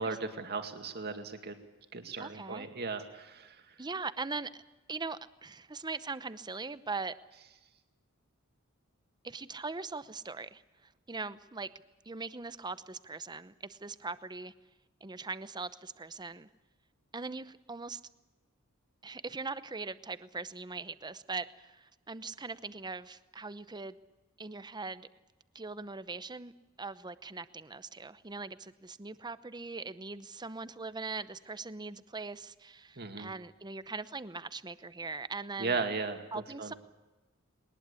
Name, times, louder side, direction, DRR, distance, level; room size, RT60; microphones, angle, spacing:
voice 1, 0.0-1.6 1.9-3.7 33.0-33.3 35.6-36.2 36.6-36.7, right 4 dB, 50° right, 6 dB, 2.3 m, -36 dB
voice 2, 2.2-2.7 3.8-4.6 4.9-7.1 9.2-10.6 11.1-11.7 12.0-14.5 15.0-16.5 17.1-18.0 19.0-24.0 24.4-25.1 25.5-26.5 26.8-35.8 36.3-36.7, right 4 dB, 20° right, 14 dB, 0.8 m, -40 dB
21.5 x 20.0 x 8.4 m, 1.1 s
head